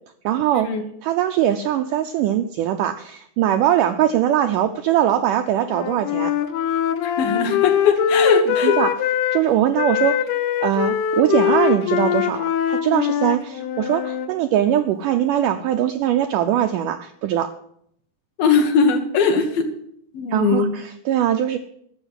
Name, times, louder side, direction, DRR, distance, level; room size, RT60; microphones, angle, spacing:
voice 1, 0.2-0.7 1.0-6.3 8.5-8.9 9.3-10.2 10.6-17.5 20.3-21.6, right 11 dB, 85° right, 8 dB, 1.8 m, -21 dB
Wind instrument woodwind instrument, 5.6-9.4 9.8-14.3, left 8 dB, 90° left, 2.9 m, -22 dB
voice 2, 7.0-8.8 18.4-19.7 20.1-20.7, left 5 dB, 70° left, 3 dB, 3.0 m, -20 dB
13.0 x 7.2 x 9.8 m, 0.70 s
omnidirectional pair, 4.5 m